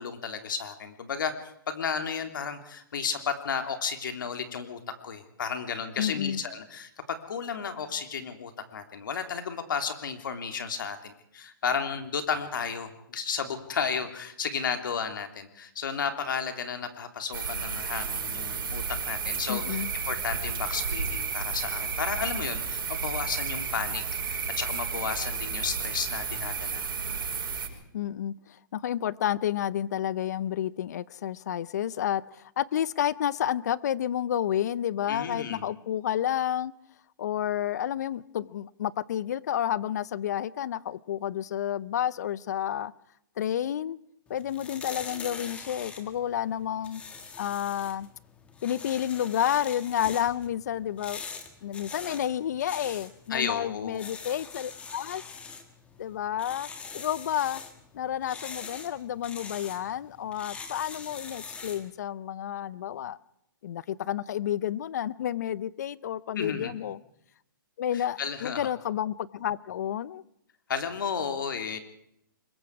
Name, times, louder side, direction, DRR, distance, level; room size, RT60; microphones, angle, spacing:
voice 1, 0.0-1.3 1.7-27.2 35.1-35.7 53.3-54.0 66.3-66.7 67.9-68.6 70.7-71.8, left 6 dB, 70° left, 7 dB, 3.3 m, -33 dB
voice 2, 6.0-6.4 19.5-19.9 27.9-28.3 28.7-36.7 37.2-42.9 43.4-44.0 44.3-47.0 47.4-48.1 48.6-51.2 51.6-55.2 56.0-56.7 56.9-57.6 57.9-63.2 63.6-67.0 67.8-70.2, left 10 dB, 50° left, 20 dB, 0.8 m, -30 dB
sound 1, 17.3-27.7, right 5 dB, 85° right, 7.4 m, -32 dB
sound 2, 44.3-61.9, left 5 dB, 10° left, 1.5 m, -43 dB
25.5 x 22.0 x 4.8 m, 0.75 s
hypercardioid pair, 160°, 11 cm